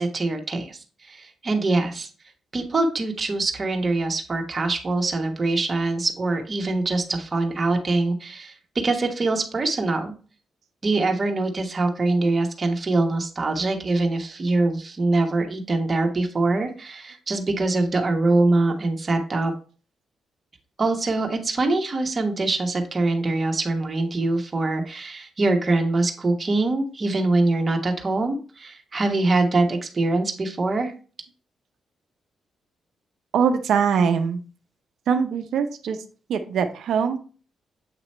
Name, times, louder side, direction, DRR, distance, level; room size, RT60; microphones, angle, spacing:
voice 1, 0.0-2.1 2.5-8.5 8.8-10.1 10.8-19.5 20.8-30.9, right 2 dB, 35° right, 4 dB, 1.2 m, -23 dB
voice 2, 33.3-34.4 35.1-36.0 36.3-37.2, right 6 dB, 80° right, 7 dB, 0.6 m, -22 dB
8.2 x 3.0 x 4.3 m, 0.38 s
cardioid pair, 85°, 0 cm